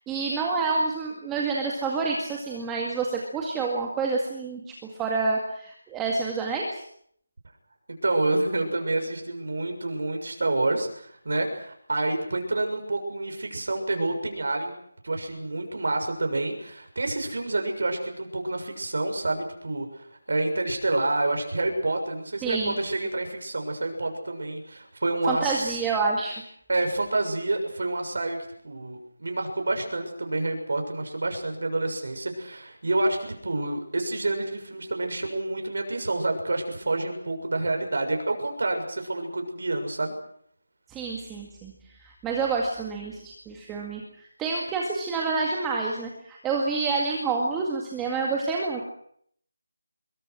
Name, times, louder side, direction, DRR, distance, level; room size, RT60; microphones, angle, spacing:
voice 1, 0.1-4.6 5.0-6.8 22.4-22.7 25.3-26.3 40.9-41.7 42.0-48.8, right 4 dB, 5° right, -1 dB, 2.0 m, -28 dB
voice 2, 8.0-14.7 15.0-25.8 26.7-28.4 28.6-40.1, right 2 dB, 65° right, 4 dB, 6.6 m, -28 dB
25.5 x 23.0 x 6.3 m, 0.66 s
figure-of-eight pair, 175°, 0 cm